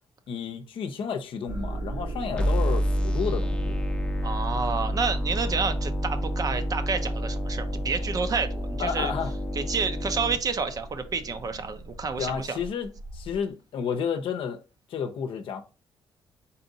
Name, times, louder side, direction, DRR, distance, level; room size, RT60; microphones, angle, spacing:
voice 1, 0.3-3.7 8.8-9.3 12.2-14.6 14.9-15.6, left 7 dB, 70° left, 0.7 m, -31 dB
sound 1, 1.5-13.4, right 1 dB, 70° right, 1.1 m, -39 dB
sound 2, 2.4-10.4, equal, 10° left, 0.7 m, -29 dB
voice 2, 4.2-9.1 9.6-12.6, right 5 dB, 40° right, 0.6 m, -29 dB
4.1 x 2.6 x 3.9 m
cardioid pair, 90°, 9 cm